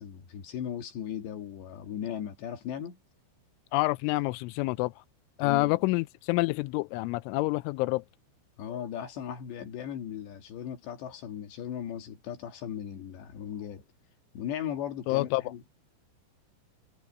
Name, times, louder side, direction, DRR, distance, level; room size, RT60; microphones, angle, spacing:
voice 1, 0.0-3.0 5.4-5.9 8.6-13.8 14.3-15.6, left 9 dB, 65° left, 3.9 m, -37 dB
voice 2, 3.7-4.9 5.4-8.0 15.1-15.4, left 21 dB, 85° left, 2.8 m, -27 dB
omnidirectional pair, 5.9 m